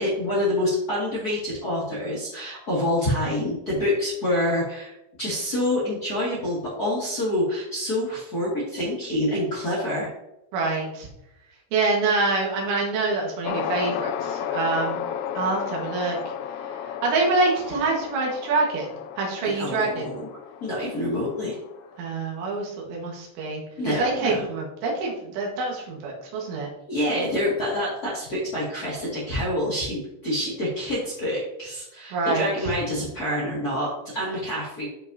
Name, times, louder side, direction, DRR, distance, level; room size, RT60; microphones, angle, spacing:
voice 1, 0.0-10.1 19.4-20.3 20.6-21.6 23.8-24.4 26.9-34.9, left 1 dB, 70° left, -6 dB, 0.8 m, -27 dB
voice 2, 10.5-11.1 11.7-15.0 15.4-16.2 16.6-18.9 19.2-20.1 22.0-23.6 23.9-26.7 32.1-32.5, right 3 dB, 80° right, -2 dB, 3.9 m, -26 dB
sound 1, 13.4-22.0, left 9 dB, 85° left, 3.0 m, -33 dB
12.5 x 5.5 x 2.7 m, 0.87 s
omnidirectional pair, 5.4 m